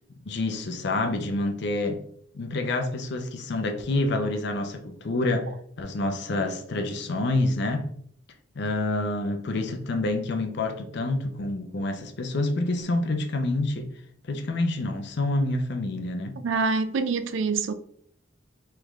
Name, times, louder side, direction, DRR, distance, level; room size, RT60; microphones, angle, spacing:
voice 1, 0.3-2.0 2.3-5.5 5.8-7.9 8.6-13.9 14.2-16.3, left 2 dB, 60° left, 0.6 m, -27 dB
voice 2, 16.4-17.7, right 4 dB, 70° right, 0.4 m, -25 dB
3.6 x 3.3 x 3.1 m
head